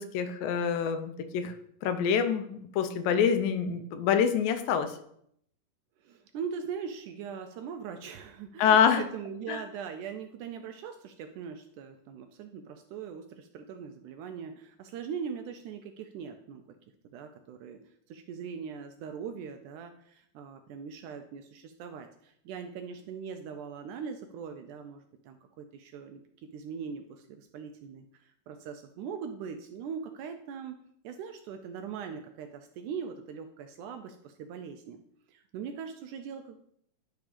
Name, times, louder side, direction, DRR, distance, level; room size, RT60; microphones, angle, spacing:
voice 1, 0.0-1.5 1.8-4.9 8.6-9.0 9.5-9.6, left 7 dB, 85° left, 9 dB, 2.4 m, -26 dB
voice 2, 6.0-16.6 17.1-17.8 18.1-30.8 31.0-35.0 35.3-36.6, right 6 dB, 80° right, 6 dB, 1.8 m, -41 dB
10.5 x 3.5 x 5.0 m, 0.70 s
omnidirectional pair, 4.0 m